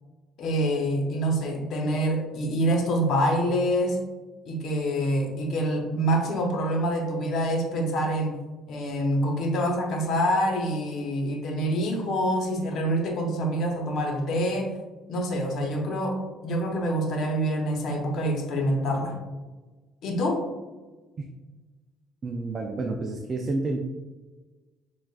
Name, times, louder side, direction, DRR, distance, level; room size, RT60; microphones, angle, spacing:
voice 1, 0.4-4.0 4.4-8.4 8.7-14.7 15.1-19.2 20.0-20.4, equal, 60° left, 1 dB, 0.9 m, -26 dB
voice 2, 22.2-23.8, right 2 dB, 35° right, 2 dB, 0.4 m, -29 dB
6.6 x 2.4 x 2.4 m, 1.2 s
cardioid pair, 105°, 0 cm